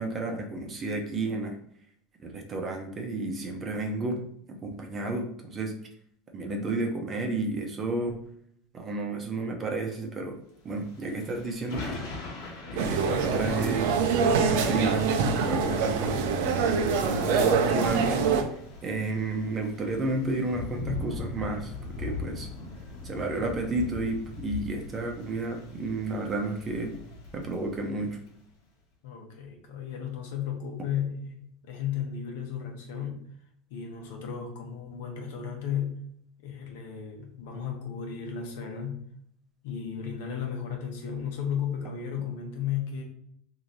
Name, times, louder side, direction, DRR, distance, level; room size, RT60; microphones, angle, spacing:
voice 1, 0.0-1.6 2.2-4.2 4.5-5.7 6.3-8.2 8.7-10.4 10.6-12.0 12.7-13.9 14.3-15.1 15.4-16.2 16.9-18.2 18.8-22.5 23.0-26.9 27.3-28.2, right 2 dB, 25° right, 2 dB, 0.7 m, -31 dB
Thunder / Rain, 10.8-28.3, left 3 dB, 65° left, 1.2 m, -40 dB
sound 1, 12.8-18.4, right 5 dB, 75° right, 0.5 m, -25 dB
voice 2, 29.0-33.3 33.7-36.0 36.4-39.1 39.6-43.0, left 8 dB, 80° left, 2 dB, 1.0 m, -34 dB
3.2 x 2.7 x 3.9 m, 0.66 s
supercardioid pair, 145°, 0 cm